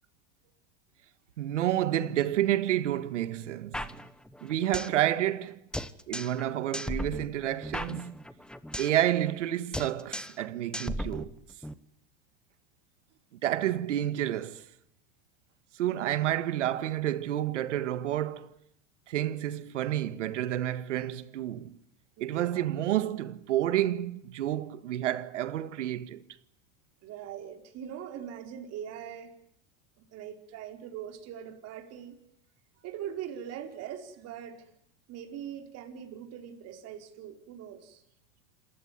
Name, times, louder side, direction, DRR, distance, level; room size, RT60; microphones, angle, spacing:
voice 1, 1.4-3.9 4.4-5.6 6.1-8.2 8.8-11.3 13.4-14.6 15.7-18.5 19.1-21.8 22.2-26.2, right 12 dB, 90° right, 1.7 m, -29 dB
sound 1, 3.7-5.0 5.3-5.4 5.7-6.5 6.7-9.0 9.3-9.5 9.7-10.5 10.7-11.7, left 1 dB, ahead, 1.1 m, -36 dB
voice 2, 22.2-22.7 27.0-29.4 30.1-32.1 32.8-34.7 35.1-38.0, right 9 dB, 45° right, 4.7 m, -41 dB
28.0 x 15.0 x 9.7 m
supercardioid pair, 120°, 35 cm